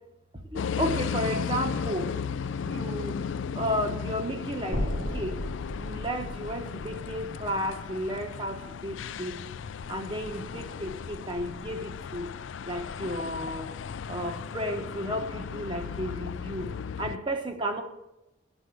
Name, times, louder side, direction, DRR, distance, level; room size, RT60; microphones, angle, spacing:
voice 1, 0.5-2.1 2.6-3.1 3.6-4.8 5.1-5.3 5.8-9.3 9.9-12.3 12.7-13.7 14.1-16.7 17.0-17.8, equal, 25° right, 4 dB, 1.1 m, -33 dB
sound 1, 0.6-17.2, left 6 dB, 75° left, 0.4 m, -35 dB
sound 2, 4.7-8.9, equal, 75° right, 1.9 m, -36 dB
9.9 x 6.4 x 7.8 m, 0.93 s
head